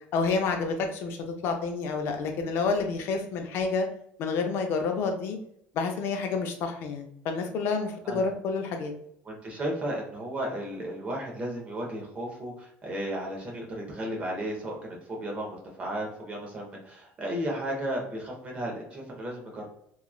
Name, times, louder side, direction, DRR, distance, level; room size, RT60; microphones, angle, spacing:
voice 1, 0.1-1.2 1.4-3.9 4.2-5.4 5.7-8.9, left 4 dB, 50° left, 4 dB, 0.5 m, -29 dB
voice 2, 9.2-19.7, right 1 dB, 25° right, -1 dB, 0.8 m, -34 dB
3.0 x 2.3 x 2.3 m, 0.72 s
cardioid pair, 170°, 5 cm